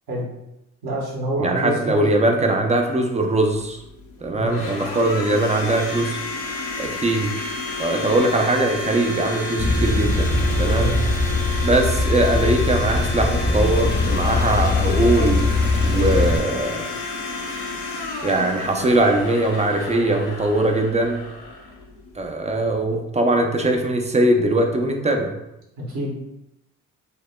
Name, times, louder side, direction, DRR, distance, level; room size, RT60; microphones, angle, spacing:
voice 1, 0.8-2.1 4.3-4.7 10.7-10.9 25.8-26.2, right 1 dB, 65° right, -4 dB, 1.4 m, -27 dB
voice 2, 1.4-3.8 4.2-6.2 6.8-7.5 7.8-10.3 10.6-11.0 11.6-15.5 15.8-16.9 18.2-21.3 22.2-25.3, right 2 dB, 20° right, 3 dB, 0.5 m, -21 dB
Domestic sounds home sounds, 3.5-22.3, left 3 dB, 65° left, 0.9 m, -31 dB
Male speech man speaking / Car / Idling, 9.6-16.4, left 3 dB, 30° left, 0.8 m, -21 dB
4.9 x 2.1 x 2.2 m, 0.86 s
hypercardioid pair, 50°, 38 cm